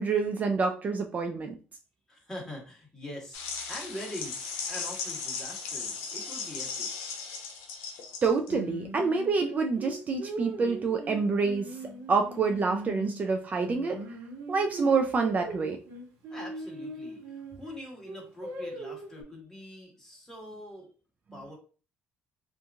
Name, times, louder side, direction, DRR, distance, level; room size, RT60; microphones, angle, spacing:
voice 1, 0.0-1.5 8.2-14.0 14.5-15.8, right 4 dB, 35° right, 4 dB, 0.4 m, -27 dB
voice 2, 2.1-6.9 16.3-20.9 21.3-21.6, left 1 dB, 10° left, -1 dB, 1.3 m, -43 dB
sound 1, 3.3-8.5, left 5 dB, 85° left, 0.6 m, -37 dB
Singing, 8.5-13.2 13.5-17.6 18.0-19.2, right 1 dB, 60° right, 1.1 m, -40 dB
2.7 x 2.5 x 2.3 m, 0.36 s
supercardioid pair, 85°, 4 cm